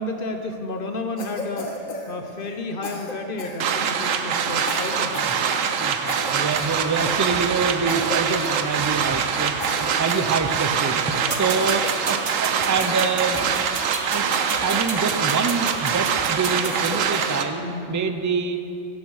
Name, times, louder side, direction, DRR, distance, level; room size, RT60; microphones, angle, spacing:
voice 1, 0.0-5.2 10.9-11.4 17.6-18.0, left 2 dB, 50° left, 5 dB, 0.9 m, -32 dB
Cough, 1.2-2.6 2.8-4.1 4.6-5.4 5.6-5.8 6.1-7.6 7.9-8.2 8.4-9.1 9.6-10.8 11.3-12.3 12.8-14.0 14.3-15.0 15.4-16.0 16.5-17.4, left 2 dB, 90° left, 1.8 m, -35 dB
sound 1, 3.6-17.4, right 7 dB, 80° right, 1.1 m, -24 dB
voice 2, 5.6-11.0 11.3-13.6 14.1-17.6 17.9-18.6, right 5 dB, 30° right, 8 dB, 0.3 m, -26 dB
sound 2, 11.3-17.0, right 4 dB, 50° right, 1.2 m, -33 dB
17.5 x 7.1 x 6.4 m, 2.7 s
omnidirectional pair, 1.4 m